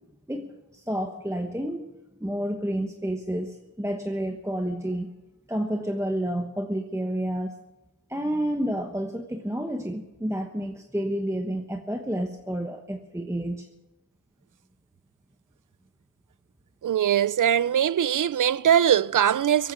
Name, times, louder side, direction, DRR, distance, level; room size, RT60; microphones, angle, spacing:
voice 1, 0.3-1.9 2.2-5.1 5.5-7.5 8.1-13.7, right 1 dB, 10° right, 1.2 m, -30 dB
voice 2, 16.8-19.7, right 9 dB, 65° right, 0.5 m, -21 dB
23.0 x 9.3 x 6.2 m
wide cardioid pair, 55°, 34 cm